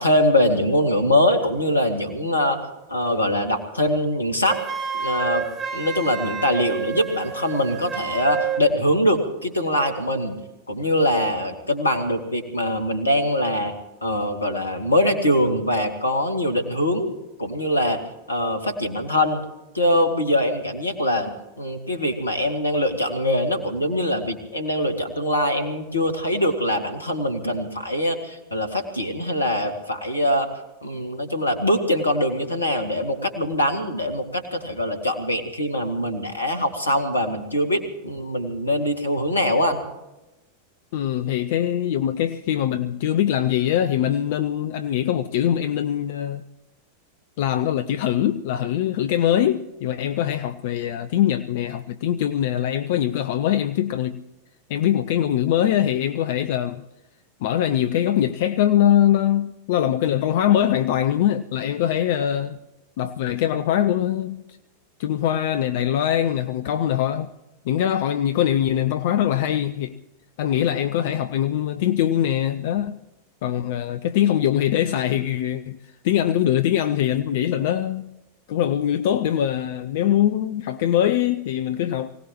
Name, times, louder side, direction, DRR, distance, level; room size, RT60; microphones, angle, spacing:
voice 1, 0.0-2.6 2.9-4.6 4.9-5.4 5.7-10.4 10.7-13.7 14.0-18.0 18.3-19.4 19.7-21.3 21.6-30.5 30.8-39.8, left 1 dB, 80° left, 2.1 m, -23 dB
Wind instrument woodwind instrument, 4.5-8.7, right 6 dB, 25° right, 1.9 m, -29 dB
voice 2, 40.9-46.4 47.4-54.2 54.7-56.8 57.4-62.6 63.0-64.6 65.0-67.3 67.7-69.9 70.4-73.0 73.4-75.8 76.0-78.1 78.5-82.1, left 11 dB, 50° left, 0.6 m, -22 dB
24.5 x 18.0 x 3.0 m
figure-of-eight pair, 90°, 0 cm